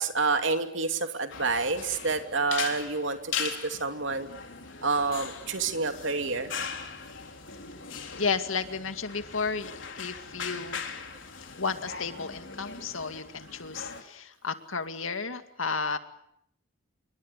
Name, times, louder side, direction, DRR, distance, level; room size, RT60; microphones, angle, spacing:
voice 1, 0.0-4.3 4.8-6.5, right 4 dB, 70° right, 7 dB, 2.8 m, -28 dB
sound 1, 1.3-14.0, left 6 dB, 70° left, 3.8 m, -39 dB
voice 2, 8.2-10.8 11.6-16.0, left 5 dB, 90° left, 8 dB, 2.3 m, -32 dB
28.5 x 23.5 x 8.3 m, 0.71 s
head